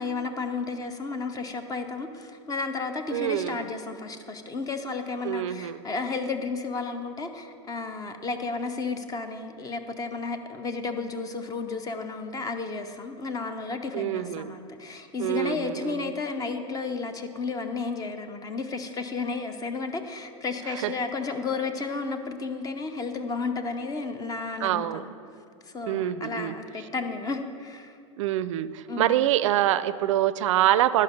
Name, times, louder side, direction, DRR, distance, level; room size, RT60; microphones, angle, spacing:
voice 1, 0.0-25.1 25.6-28.0 28.9-29.1, left 4 dB, 20° left, 7 dB, 0.7 m, -32 dB
voice 2, 3.1-3.6 5.2-5.8 13.9-14.5 15.2-16.1 20.8-20.9 24.6-25.0 25.9-26.5 28.2-31.0, right 13 dB, 70° right, 15 dB, 0.4 m, -25 dB
11.0 x 5.3 x 5.2 m, 2.5 s
hypercardioid pair, 95°, 17 cm